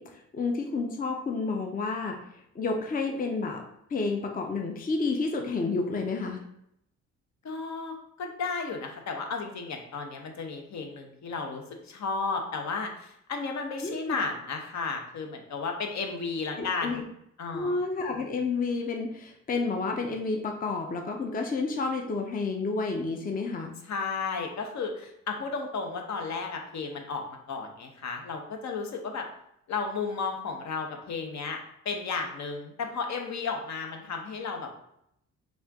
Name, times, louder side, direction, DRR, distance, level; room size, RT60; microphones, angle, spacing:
voice 1, 0.0-2.2 2.5-6.4 13.8-14.2 16.6-17.0 17.5-23.7, left 3 dB, 30° left, 3 dB, 0.6 m, -30 dB
voice 2, 7.4-17.0 17.4-17.8 23.9-29.3 29.7-31.6 31.8-34.7, left 4 dB, 65° left, 3 dB, 0.9 m, -33 dB
4.3 x 2.4 x 3.5 m, 0.76 s
cardioid pair, 80°, 31 cm